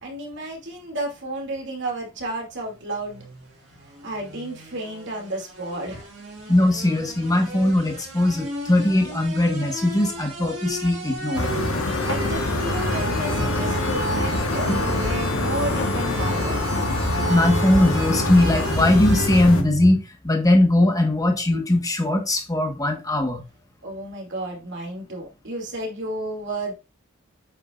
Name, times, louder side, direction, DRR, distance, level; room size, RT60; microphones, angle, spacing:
voice 1, 0.0-3.2 4.0-6.1 12.0-16.6 23.8-26.8, right 1 dB, 60° right, 2.5 m, -32 dB
sound 1, 2.7-19.4, right 2 dB, 90° right, 2.8 m, -35 dB
voice 2, 6.5-11.5 13.4-13.5 17.3-20.0 20.2-23.4, left 1 dB, 15° left, 1.3 m, -20 dB
sound 2, 11.3-19.6, left 2 dB, 80° left, 1.4 m, -25 dB
8.2 x 5.7 x 2.5 m
head